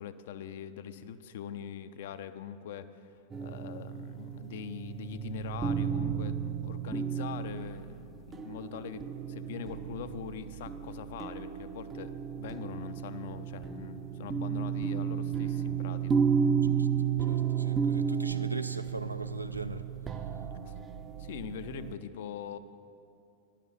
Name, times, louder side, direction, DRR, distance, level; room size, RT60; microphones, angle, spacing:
voice 1, 0.0-3.1 3.4-16.5 20.7-20.8 21.2-22.6, left 8 dB, 55° left, 12 dB, 0.4 m, -42 dB
sound 1, 3.3-21.9, right 7 dB, 20° right, 0.5 m, -33 dB
voice 2, 17.3-19.9, right 1 dB, 85° right, 10 dB, 0.4 m, -39 dB
11.0 x 5.7 x 7.0 m, 2.6 s
figure-of-eight pair, 90°, 0 cm